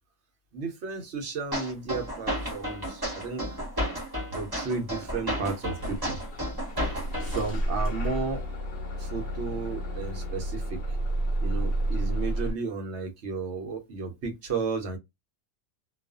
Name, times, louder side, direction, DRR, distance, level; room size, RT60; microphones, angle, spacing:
voice 1, 0.5-3.5 4.3-6.2 6.9-7.0 7.3-8.4 9.0-10.8 11.4-15.0, right 4 dB, 75° right, 1.1 m, -33 dB
sound 1, 1.5-7.5, equal, 20° right, 1.2 m, -32 dB
Bus / Engine starting, 5.8-12.5, right 1 dB, 60° left, 1.0 m, -31 dB
2.5 x 2.4 x 2.3 m
omnidirectional pair, 1.2 m